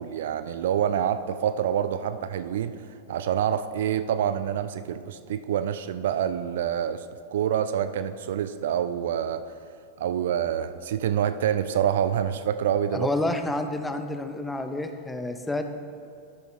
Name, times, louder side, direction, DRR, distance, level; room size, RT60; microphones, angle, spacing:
voice 1, 0.0-2.8 3.1-7.0 7.3-9.5 10.0-13.1, right 9 dB, 60° right, 12 dB, 0.3 m, -26 dB
voice 2, 12.9-15.6, left 2 dB, 5° left, 7 dB, 0.6 m, -29 dB
12.0 x 6.7 x 3.1 m, 2.5 s
figure-of-eight pair, 90°, 0 cm